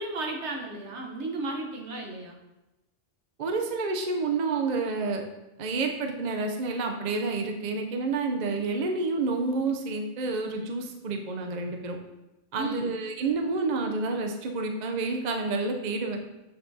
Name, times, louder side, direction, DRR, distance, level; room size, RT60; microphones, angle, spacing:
voice 1, 0.0-2.4 12.5-13.0, right 2 dB, 70° right, 1 dB, 1.2 m, -34 dB
voice 2, 3.4-5.2 5.6-12.0 12.5-16.2, right 3 dB, 50° right, 3 dB, 0.6 m, -29 dB
8.3 x 4.6 x 2.7 m, 0.99 s
omnidirectional pair, 1.2 m